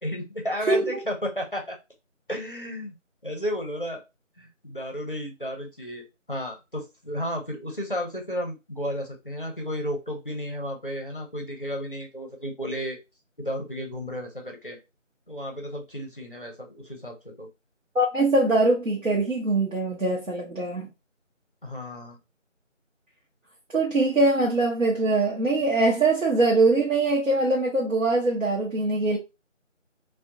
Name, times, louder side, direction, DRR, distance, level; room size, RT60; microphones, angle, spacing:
voice 1, 0.0-1.8 2.3-2.9 3.2-4.0 4.4-13.0 13.4-14.8 15.3-17.5 21.6-22.2, equal, 45° left, 0.5 m, -33 dB
voice 2, 17.9-20.9 23.7-29.2, right 2 dB, 75° right, 0.8 m, -22 dB
2.4 x 2.1 x 2.6 m
figure-of-eight pair, 175°, 38 cm